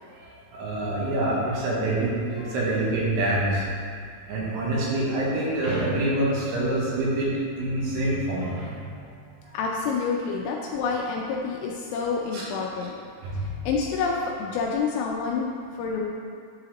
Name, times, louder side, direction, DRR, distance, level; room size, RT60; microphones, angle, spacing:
voice 1, 0.1-3.6 4.3-8.8 12.3-12.5 13.2-13.4, right 1 dB, 75° right, -5 dB, 3.4 m, -26 dB
voice 2, 9.5-13.0 13.3-16.1, left 5 dB, 85° left, -1 dB, 2.7 m, -28 dB
11.0 x 4.0 x 2.9 m, 2.3 s
omnidirectional pair, 5.7 m